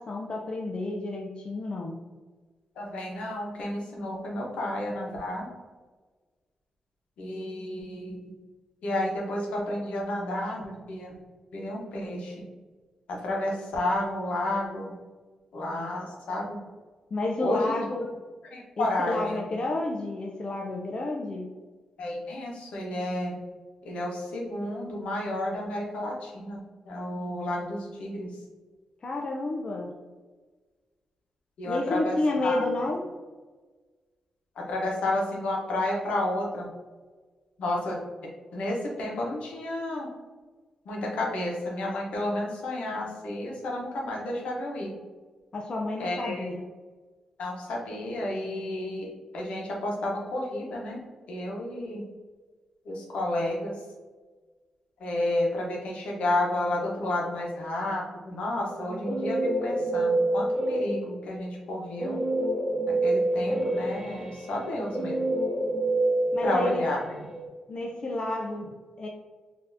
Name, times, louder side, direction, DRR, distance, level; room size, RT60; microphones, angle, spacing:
voice 1, 0.0-2.0 17.1-18.1 18.8-21.5 29.0-29.9 31.6-33.0 45.5-46.6 66.3-66.9 67.7-69.1, left 2 dB, 45° left, 0 dB, 0.4 m, -30 dB
voice 2, 2.8-5.5 7.2-8.2 8.8-11.1 11.5-12.3 13.1-14.9 15.5-16.6 17.4-17.8 18.5-19.4 22.0-23.3 23.8-28.3 31.6-32.9 34.6-36.7 37.6-38.0 38.5-40.1 40.8-44.9 46.0-46.5 47.4-49.1 49.3-51.0 51.3-52.0 52.8-53.7 55.0-62.2 62.9-65.2 66.4-67.0, left 1 dB, 80° left, -2 dB, 0.9 m, -31 dB
Guitar, 58.7-61.2 62.0-67.4, right 1 dB, 15° right, 0.9 m, -27 dB
3.8 x 2.7 x 2.6 m, 1.4 s
cardioid pair, 70°, 2 cm